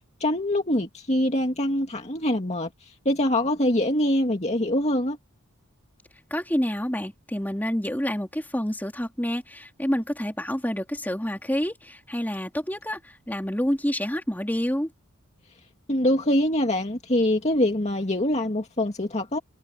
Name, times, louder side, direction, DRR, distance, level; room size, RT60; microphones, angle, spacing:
voice 1, 0.2-2.7 3.1-5.2 15.9-19.4, left 1 dB, 30° left, 2.3 m, -24 dB
voice 2, 6.3-14.9, equal, 10° left, 3.4 m, -28 dB
head